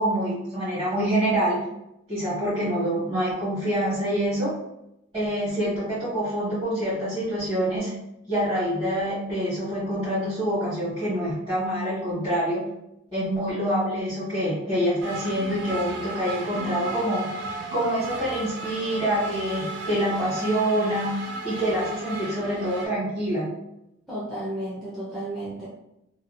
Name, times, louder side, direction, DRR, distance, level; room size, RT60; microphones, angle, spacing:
voice 1, 0.0-1.6 2.1-4.5 5.1-7.9 8.3-12.7 13.1-17.3 17.7-23.4, equal, 20° right, -15 dB, 1.2 m, -26 dB
sound 1, 15.0-22.9, right 2 dB, 65° right, 0.3 m, -35 dB
voice 2, 24.1-25.7, right 1 dB, ahead, -9 dB, 0.5 m, -33 dB
2.7 x 2.2 x 2.5 m, 0.85 s
head